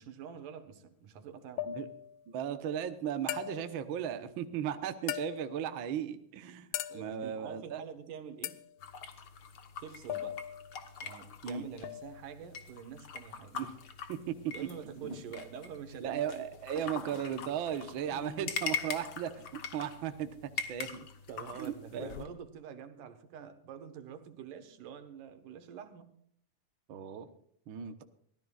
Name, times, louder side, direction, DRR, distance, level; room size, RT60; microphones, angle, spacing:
voice 1, 0.0-1.7 6.9-8.6 9.8-10.4 11.0-13.6 14.5-16.5 16.7-17.2 21.3-26.1, right 7 dB, 85° right, 8 dB, 2.9 m, -46 dB
sound 1, 1.6-2.2 3.3-3.9 5.1-5.7 6.7-7.3 8.4-8.7 10.1-10.8 11.8-12.2, left 12 dB, 80° left, 1.4 m, -39 dB
voice 2, 2.3-7.8 11.4-11.6 13.5-13.7 14.1-14.5 15.0-15.2 16.0-21.1 21.6-22.1 26.9-27.3 27.7-28.0, right 9 dB, 65° right, 8 dB, 1.3 m, -36 dB
sound 2, 8.8-22.3, left 5 dB, 55° left, 1.1 m, -43 dB
23.5 x 16.0 x 2.4 m, 0.63 s
omnidirectional pair, 3.6 m